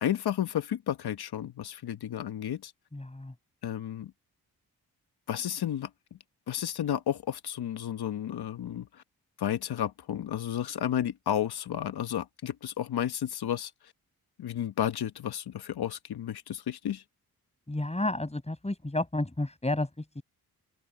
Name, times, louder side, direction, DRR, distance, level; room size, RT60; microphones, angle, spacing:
voice 1, 0.0-2.7 3.6-4.1 5.3-5.9 6.5-8.9 9.4-13.7 14.4-17.0, left 10 dB, 80° left, 1.3 m, -32 dB
voice 2, 2.9-3.3 17.7-20.2, left 1 dB, 15° left, 8.0 m, -31 dB
open air
cardioid pair, 60°, 38 cm